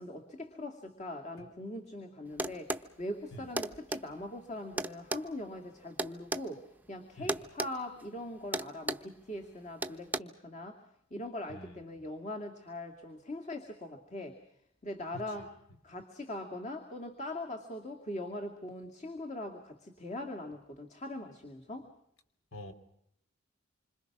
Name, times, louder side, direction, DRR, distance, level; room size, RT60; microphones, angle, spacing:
voice 1, 0.0-10.8 11.1-14.4 14.8-15.5 15.8-21.9, left 1 dB, 35° left, 4 dB, 2.4 m, -41 dB
sound 1, 2.4-2.9 3.6-4.0 4.8-6.5 7.3-7.7 8.0-8.2 8.5-9.1 9.8-10.2, right 2 dB, 10° right, 0.9 m, -34 dB
voice 2, 11.5-12.1 15.1-15.5 22.5-22.7, equal, 70° left, 8 dB, 3.1 m, -47 dB
27.5 x 25.5 x 6.1 m, 0.72 s
head